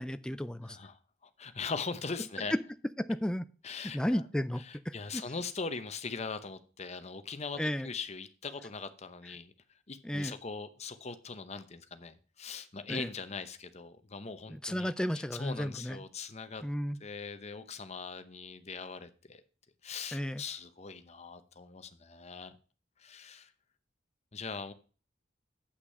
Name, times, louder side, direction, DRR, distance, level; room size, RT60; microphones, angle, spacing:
voice 1, 0.0-0.8 3.1-3.5 3.9-4.9 7.6-7.9 10.0-10.3 12.9-13.1 14.5-16.0 16.6-17.0 20.1-20.4, equal, 5° left, 12 dB, 0.3 m, -33 dB
voice 2, 0.6-2.5 3.6-4.2 4.6-9.5 9.9-16.6 17.0-19.4 19.8-22.6 23.0-23.5 24.3-24.7, left 4 dB, 35° left, 11 dB, 0.8 m, -41 dB
8.2 x 6.0 x 5.4 m, 0.37 s
head